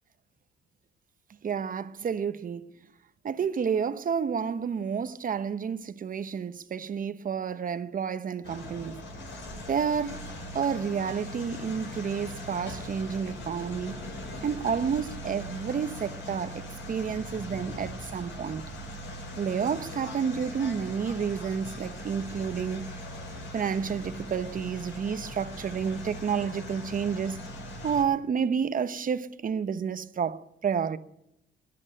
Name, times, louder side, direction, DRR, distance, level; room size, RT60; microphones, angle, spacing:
voice 1, 1.4-2.7 3.2-9.0 9.7-10.3 10.5-14.0 14.4-18.6 19.4-22.9 23.5-27.4 27.8-31.0, right 7 dB, 45° right, 0.9 m, -30 dB
sound 1, 8.4-28.0, left 1 dB, 75° left, 6.2 m, -40 dB
15.5 x 11.0 x 8.8 m
cardioid pair, 90°, 20 cm